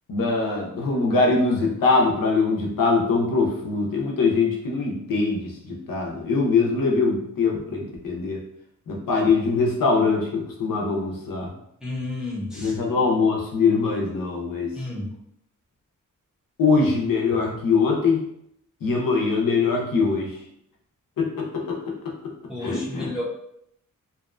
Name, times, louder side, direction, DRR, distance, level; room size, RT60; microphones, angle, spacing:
voice 1, 0.1-8.4 8.9-11.5 12.5-14.7 16.6-18.3 18.8-20.4 21.2-22.1 22.6-23.1, left 4 dB, 90° left, -1 dB, 0.6 m, -22 dB
voice 2, 11.8-12.7 14.7-15.1 22.5-23.2, left 2 dB, ahead, -6 dB, 0.5 m, -31 dB
2.7 x 2.1 x 2.4 m, 0.74 s
wide cardioid pair, 175°, 32 cm